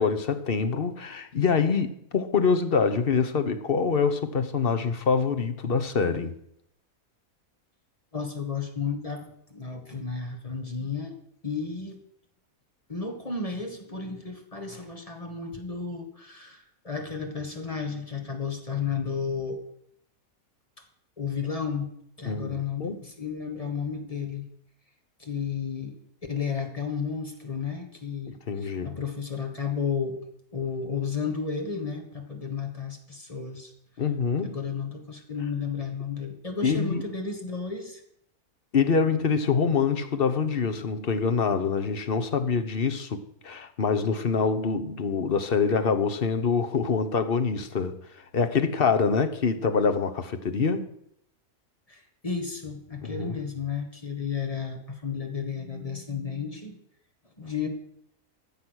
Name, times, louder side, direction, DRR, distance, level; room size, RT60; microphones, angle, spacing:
voice 1, 0.0-6.3 22.2-23.0 28.3-28.9 34.0-34.6 36.6-37.0 38.7-48.0 48.3-50.9 53.0-53.4, left 5 dB, 45° left, 1.1 m, -25 dB
voice 2, 8.1-11.1 11.4-12.0 12.9-19.6 21.2-21.9 22.2-24.4 25.2-25.9 26.3-30.2 30.5-33.7 34.4-38.0 51.9-56.8 57.4-57.7, left 5 dB, 25° left, 1.6 m, -33 dB
14.5 x 7.4 x 6.3 m
omnidirectional pair, 1.5 m